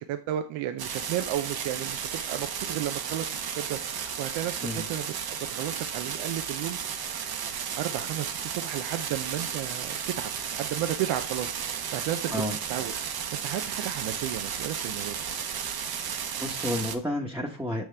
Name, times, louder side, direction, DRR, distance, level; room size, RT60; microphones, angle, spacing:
voice 1, 0.0-6.8 7.2-7.3 7.8-12.4 12.7-12.9 13.4-15.2, right 12 dB, 85° right, 7 dB, 0.7 m, -33 dB
sound 1, 0.8-17.0, right 7 dB, 50° right, 1.0 m, -34 dB
voice 2, 16.4-17.8, left 1 dB, 5° right, -2 dB, 1.2 m, -30 dB
6.5 x 6.2 x 3.4 m, 0.40 s
cardioid pair, 80°, 46 cm